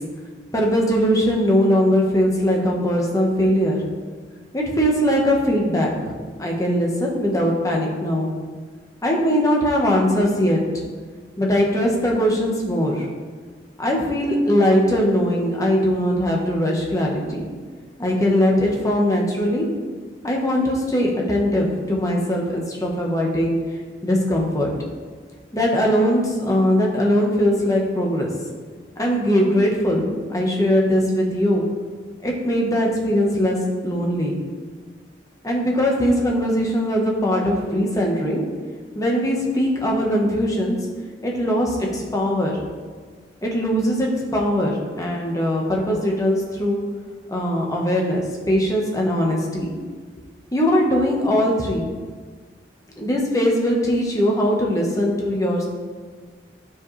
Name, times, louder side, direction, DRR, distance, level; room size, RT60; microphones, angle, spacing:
voice 1, 0.5-3.8 4.5-8.3 9.0-10.8 11.4-13.1 13.8-17.5 18.0-19.6 20.2-23.6 24.0-24.7 25.5-28.3 29.0-31.7 32.2-33.6 33.8-34.4 35.4-38.4 38.9-40.8 41.2-42.6 43.4-44.7 45.0-46.8 47.3-48.2 48.5-49.7 50.5-51.8 53.0-55.7, equal, 20° left, -1 dB, 1.1 m, -20 dB
11.5 x 5.0 x 3.2 m, 1.5 s
head